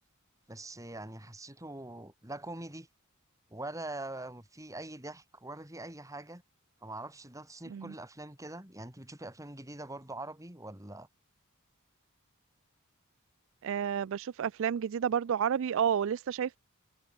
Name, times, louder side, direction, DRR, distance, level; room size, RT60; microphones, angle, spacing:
voice 1, 0.5-2.9 3.5-6.4 6.8-11.1, right 2 dB, 15° right, 3.7 m, -43 dB
voice 2, 13.6-16.6, right 8 dB, 65° right, 0.3 m, -30 dB
head